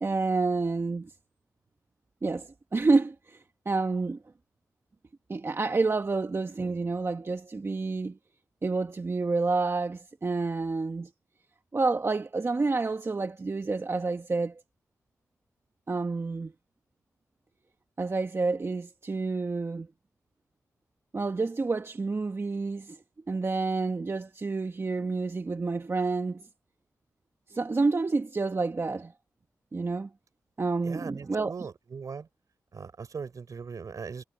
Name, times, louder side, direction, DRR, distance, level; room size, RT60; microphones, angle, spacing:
voice 1, 0.0-1.1 2.2-4.2 5.3-8.2 8.6-11.1 11.7-14.6 15.9-16.5 18.0-19.9 21.1-23.0 23.3-26.4 27.5-29.1 29.7-30.1 30.6-31.5, right 3 dB, 40° right, 1.3 m, -29 dB
voice 2, 30.8-32.3 32.7-34.2, right 5 dB, 65° right, 4.6 m, -39 dB
cardioid pair, 50°, 6 cm